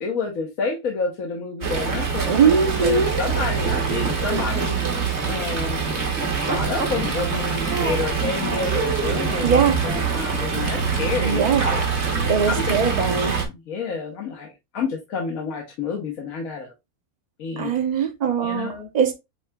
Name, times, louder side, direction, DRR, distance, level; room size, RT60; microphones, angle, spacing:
voice 1, 0.0-5.8 6.3-11.8 12.5-12.8 13.5-14.5 14.7-16.7 17.4-17.7 18.4-18.9, left 5 dB, 75° left, 1.4 m, -29 dB
Fowl, 1.6-13.5, right 5 dB, 55° right, 1.3 m, -24 dB
voice 2, 2.3-3.1 9.4-9.8 11.2-11.7 12.3-13.4 17.6-19.1, right 6 dB, 35° right, 0.8 m, -21 dB
7.6 x 2.8 x 2.2 m
omnidirectional pair, 1.5 m